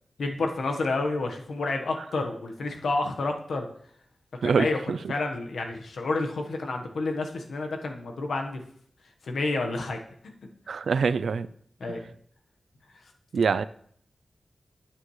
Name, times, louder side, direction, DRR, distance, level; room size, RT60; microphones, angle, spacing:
voice 1, 0.2-3.7 4.4-4.8 5.1-8.6 9.2-10.0 11.8-12.1, left 3 dB, 85° left, 1.2 m, -29 dB
voice 2, 4.4-5.1 10.7-11.5 13.3-13.6, right 5 dB, 85° right, 0.3 m, -25 dB
9.8 x 8.4 x 3.2 m
wide cardioid pair, 125°, 0 cm